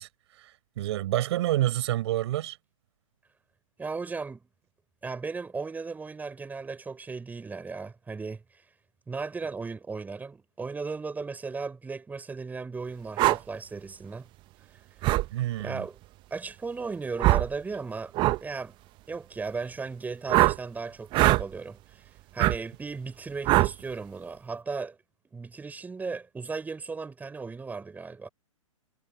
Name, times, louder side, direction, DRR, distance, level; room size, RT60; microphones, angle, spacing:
voice 1, 0.0-2.6 15.3-15.9, right 14 dB, 50° right, 4.9 m, -29 dB
voice 2, 3.8-4.4 5.0-8.4 9.1-14.3 15.6-16.0 16.3-18.1 18.4-18.8 19.1-22.0 22.3-25.0 25.2-28.3, right 4 dB, 10° right, 6.7 m, -36 dB
sound 1, 13.2-13.4 15.0-15.3 17.2-17.5 18.1-18.4 20.3-20.6 21.1-21.4 22.4-22.6 23.5-23.7, right 18 dB, 25° right, 1.0 m, -21 dB
hypercardioid pair, 120°, 17 cm